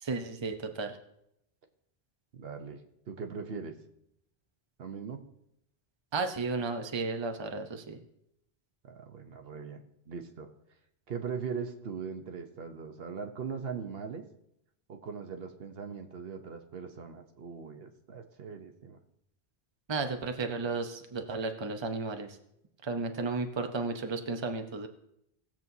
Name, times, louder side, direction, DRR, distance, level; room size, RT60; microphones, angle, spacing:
voice 1, 0.0-1.0 6.1-8.0 19.9-22.4 22.8-24.9, right 3 dB, 30° right, 5 dB, 0.7 m, -33 dB
voice 2, 2.3-3.7 4.8-5.2 8.8-10.5 11.1-14.2 14.9-19.0, right 6 dB, 65° right, 6 dB, 1.1 m, -40 dB
19.0 x 7.4 x 2.7 m, 0.78 s
omnidirectional pair, 1.1 m